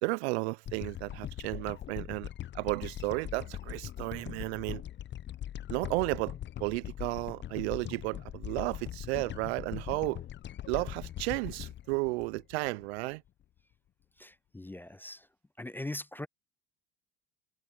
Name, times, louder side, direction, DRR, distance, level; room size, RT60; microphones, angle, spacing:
voice 1, 0.0-2.3 2.5-4.8 5.7-10.2 10.7-13.2, right 24 dB, 85° right, 0.6 m, -33 dB
sound 1, 0.7-13.1, left 11 dB, 35° left, 0.8 m, -41 dB
voice 2, 14.2-15.2 15.6-16.3, left 1 dB, 5° left, 0.4 m, -40 dB
supercardioid pair, 95°, 32 cm